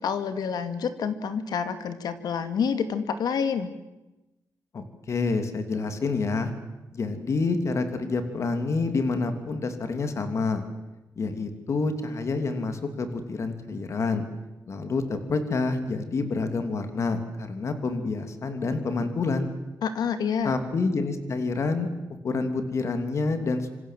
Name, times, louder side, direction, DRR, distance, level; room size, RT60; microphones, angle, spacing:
voice 1, 0.0-3.7 19.8-20.6, left 6 dB, 75° left, 9 dB, 2.5 m, -28 dB
voice 2, 4.7-6.5 6.9-10.6 11.2-14.2 14.7-19.5 20.4-21.9 22.2-23.7, left 3 dB, 45° left, 7 dB, 3.0 m, -28 dB
26.5 x 26.5 x 7.7 m, 1.0 s
wide cardioid pair, 150°, 7 cm